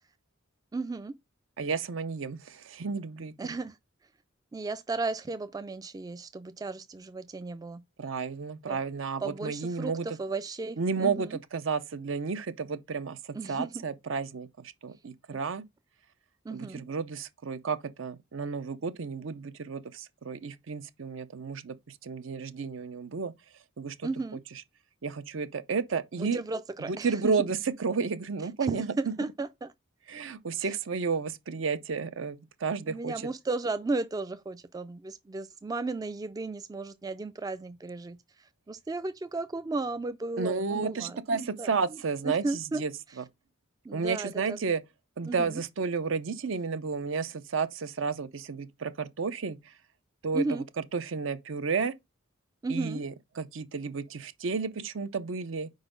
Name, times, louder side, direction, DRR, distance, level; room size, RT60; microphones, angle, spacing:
voice 1, 0.7-1.1 3.4-3.8 4.5-7.8 8.7-8.8 9.2-11.3 13.3-13.8 16.4-16.8 24.0-24.4 26.1-27.3 28.7-29.7 30.6-30.8 32.9-41.7 42.2-42.8 43.8-44.6 45.3-45.6 50.3-50.6 52.6-53.0, right 3 dB, 20° right, 0.3 m, -34 dB
voice 2, 1.6-3.3 8.0-10.2 10.8-15.6 16.5-23.3 23.8-24.1 25.0-26.4 26.8-28.9 30.1-33.1 40.4-42.9 43.2-43.3 43.9-44.8 45.2-49.6 50.2-50.6 50.9-51.9 52.7-55.7, right 5 dB, 65° right, 0.6 m, -32 dB
4.8 x 4.0 x 5.1 m
head